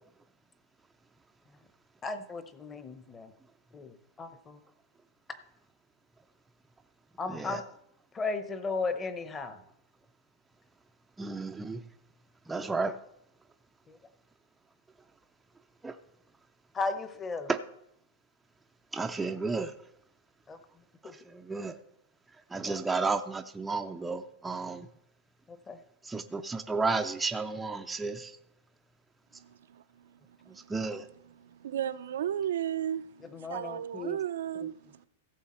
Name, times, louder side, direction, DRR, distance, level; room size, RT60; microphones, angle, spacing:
voice 1, 2.0-3.3 3.7-4.6 7.2-7.6 8.1-9.6 13.9-14.0 16.7-17.5 20.5-20.6 21.0-21.1 22.7-22.8 25.5-25.8 33.3-34.2, left 3 dB, 15° left, 0.8 m, -35 dB
voice 2, 7.3-7.6 11.2-11.8 12.5-13.0 15.8-16.0 17.5-17.6 18.9-19.7 21.0-21.8 22.5-24.9 26.0-28.4 30.5-31.0, right 4 dB, 5° right, 0.4 m, -32 dB
voice 3, 29.3-30.7 31.4-35.1, right 10 dB, 85° right, 0.5 m, -35 dB
16.0 x 7.1 x 4.3 m
supercardioid pair, 160°, 0 cm